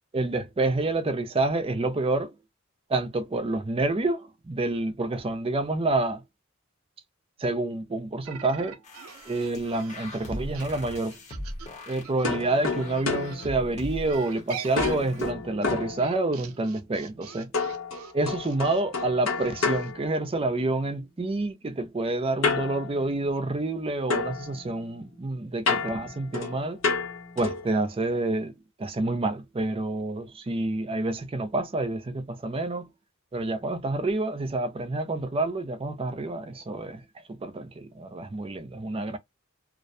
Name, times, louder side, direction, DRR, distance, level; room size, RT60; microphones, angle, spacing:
voice 1, 0.1-2.3 2.9-6.2 7.4-8.8 9.3-11.2 11.9-17.5 18.1-26.8 27.4-32.9 33.3-37.0 37.3-39.2, right 2 dB, 25° right, 0.4 m, -28 dB
sound 1, 8.2-13.5 14.0-19.9, right 7 dB, 85° right, 0.5 m, -44 dB
sound 2, 8.8-15.3, left 1 dB, 35° left, 0.8 m, -41 dB
sound 3, 12.2-14.3 14.8-16.6 17.5-20.8 22.4-23.8 24.1-27.8, left 4 dB, 70° left, 0.9 m, -31 dB
2.4 x 2.1 x 2.6 m
head